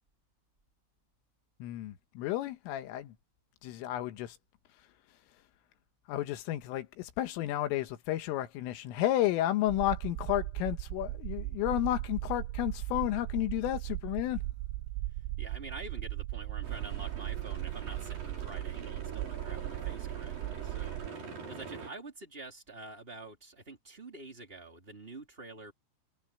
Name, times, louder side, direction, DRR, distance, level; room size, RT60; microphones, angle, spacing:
voice 1, 1.6-3.1 3.6-4.4 6.1-14.4, left 14 dB, 80° left, 3.9 m, -32 dB
sound 1, 9.7-21.1, right 18 dB, 85° right, 2.9 m, -38 dB
voice 2, 15.4-21.0 21.3-25.7, right 2 dB, 15° right, 2.9 m, -47 dB
sound 2, 16.6-21.9, right 4 dB, 45° right, 7.7 m, -44 dB
omnidirectional pair, 5.8 m